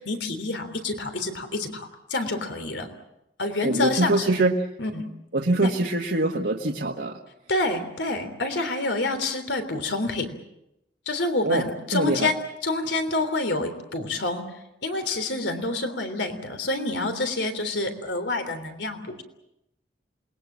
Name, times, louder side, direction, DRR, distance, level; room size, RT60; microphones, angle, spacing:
voice 1, 0.0-2.9 3.4-4.3 4.8-5.0 5.6-5.7 7.5-10.3 11.0-12.4 12.6-14.4 14.8-19.2, left 2 dB, 85° left, 8 dB, 3.4 m, -27 dB
voice 2, 3.6-4.6 5.3-7.2 11.4-12.3, right 2 dB, 70° right, 1 dB, 1.5 m, -24 dB
28.0 x 20.5 x 7.5 m, 0.85 s
head